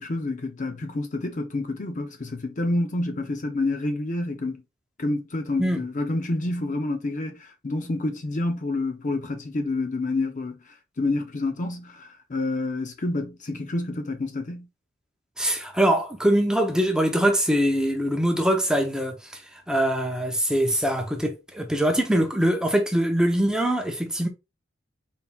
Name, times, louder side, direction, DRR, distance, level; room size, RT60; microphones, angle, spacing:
voice 1, 0.0-4.6 5.0-10.6 11.0-14.7, left 2 dB, 40° left, 0.6 m, -28 dB
voice 2, 15.4-19.4 19.7-24.3, right 1 dB, 5° right, 0.7 m, -23 dB
4.1 x 3.8 x 2.3 m
head